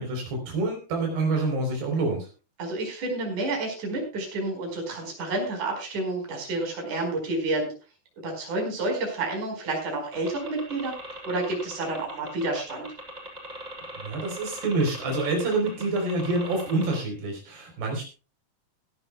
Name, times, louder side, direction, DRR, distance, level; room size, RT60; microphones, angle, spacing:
voice 1, 0.0-2.3 14.0-18.0, right 2 dB, 75° right, 1 dB, 5.9 m, -27 dB
voice 2, 2.6-7.7 8.2-10.9 11.2-12.9, right 2 dB, 50° right, 2 dB, 6.1 m, -29 dB
sound 1, 10.1-17.0, right 1 dB, 10° right, 5.9 m, -39 dB
16.0 x 16.0 x 2.3 m, 0.32 s
omnidirectional pair, 4.6 m